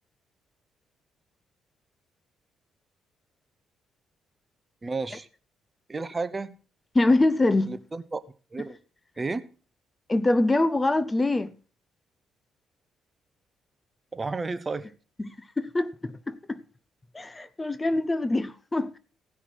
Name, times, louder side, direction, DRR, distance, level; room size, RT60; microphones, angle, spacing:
voice 1, 4.8-5.3 5.9-6.5 7.7-8.2 8.5-8.8 9.2-9.4 14.1-14.9, right 3 dB, 25° right, 0.9 m, -32 dB
voice 2, 6.9-7.8 10.1-11.5 15.2-16.6 17.1-19.0, left 2 dB, 20° left, 0.7 m, -24 dB
16.5 x 5.8 x 6.3 m
cardioid pair, 90°, 0 cm